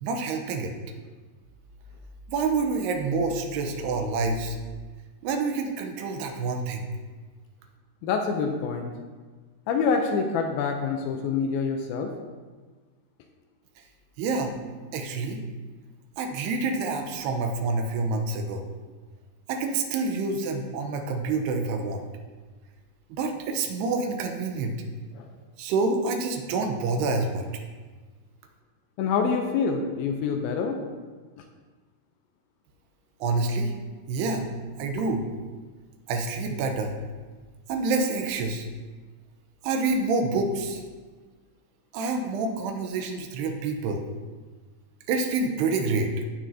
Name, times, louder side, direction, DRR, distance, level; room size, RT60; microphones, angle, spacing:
voice 1, 0.0-0.7 2.3-4.6 5.2-6.9 14.2-14.6 14.9-15.4 16.2-18.7 19.5-22.0 23.1-24.8 25.6-27.4 33.2-33.7 34.1-34.5 34.8-35.2 36.1-37.0 37.7-38.7 39.6-40.8 41.9-44.1 45.1-46.1, right 3 dB, 90° right, 4 dB, 2.9 m, -27 dB
voice 2, 8.0-8.9 9.7-12.1 25.1-25.3 29.0-30.8 31.4-31.5, left 5 dB, 80° left, 4 dB, 2.3 m, -26 dB
16.5 x 6.1 x 2.8 m, 1.4 s
omnidirectional pair, 4.7 m